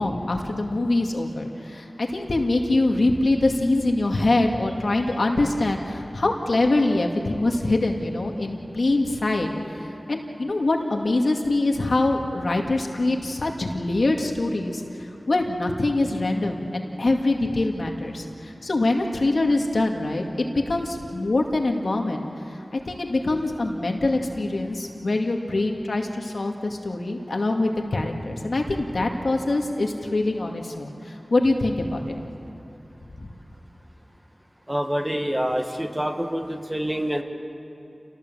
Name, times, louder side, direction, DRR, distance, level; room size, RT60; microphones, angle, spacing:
voice 1, 0.0-1.8 2.1-9.5 10.1-14.8 15.3-18.2 18.6-22.3 22.7-30.9 31.3-32.0, left 2 dB, 75° left, 2 dB, 2.2 m, -24 dB
voice 2, 34.7-37.2, equal, 10° right, 4 dB, 2.0 m, -26 dB
28.0 x 18.0 x 7.7 m, 2.8 s
wide cardioid pair, 55°, 0 cm